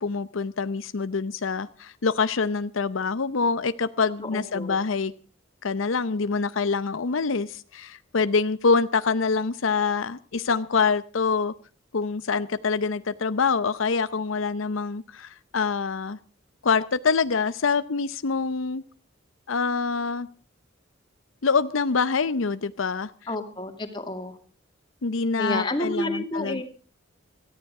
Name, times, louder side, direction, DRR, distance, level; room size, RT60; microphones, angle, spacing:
voice 1, 0.0-5.1 5.6-11.5 11.9-16.2 16.6-18.8 19.5-20.3 21.4-23.1 25.0-26.6, left 4 dB, 85° left, 14 dB, 0.7 m, -25 dB
voice 2, 4.2-4.8 23.3-24.3 25.4-26.6, left 1 dB, 25° left, 5 dB, 2.4 m, -30 dB
18.0 x 14.0 x 4.8 m, 0.39 s
head